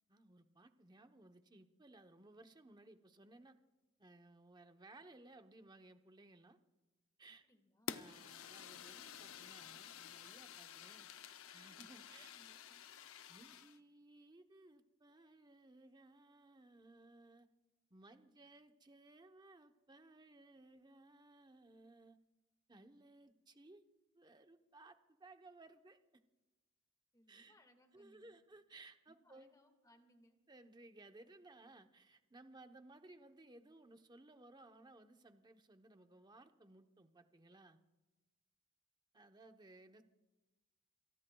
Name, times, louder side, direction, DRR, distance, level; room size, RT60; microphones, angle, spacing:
voice 1, 0.1-3.6 4.0-6.6 7.2-7.4 7.9-12.3 13.3-17.5 17.9-22.2 22.7-23.8 24.1-26.0 27.3-27.6 27.9-29.5 30.5-37.8 39.1-40.0, right 2 dB, 20° right, 7 dB, 0.9 m, -61 dB
voice 2, 7.4-8.0 12.1-12.9 27.1-28.4 29.1-30.4, left 1 dB, 20° left, 5 dB, 1.8 m, -69 dB
Fire, 7.9-13.8, left 8 dB, 80° left, 0.7 m, -51 dB
28.5 x 19.0 x 2.3 m, 1.1 s
head